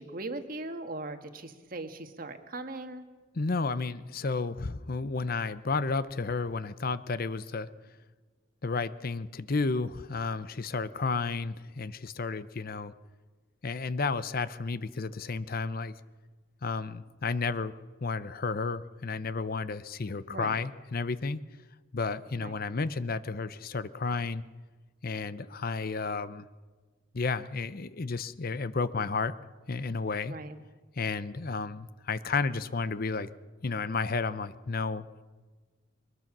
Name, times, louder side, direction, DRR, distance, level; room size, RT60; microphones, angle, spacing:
voice 1, 0.0-3.0 20.3-20.6 22.4-22.6 30.3-30.6, right 2 dB, 45° right, 7 dB, 1.6 m, -39 dB
voice 2, 3.3-7.7 8.6-12.9 13.6-15.9 16.6-17.8 18.0-21.4 21.9-24.4 25.0-26.5 27.1-29.3 29.7-30.4 31.0-33.3 33.6-35.2, left 4 dB, 50° left, 15 dB, 0.7 m, -32 dB
22.0 x 21.0 x 6.1 m, 1.3 s
head